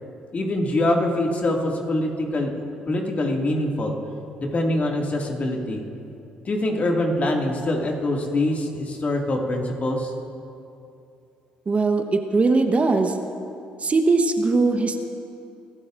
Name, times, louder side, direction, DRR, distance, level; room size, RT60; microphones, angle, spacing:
voice 1, 0.3-3.9 4.4-5.8 6.4-10.1, left 1 dB, 40° left, 0 dB, 2.2 m, -24 dB
voice 2, 11.7-13.2 13.8-15.0, right 3 dB, 35° right, 5 dB, 1.1 m, -20 dB
25.0 x 13.0 x 2.6 m, 2.7 s
hypercardioid pair, 50°, 4 cm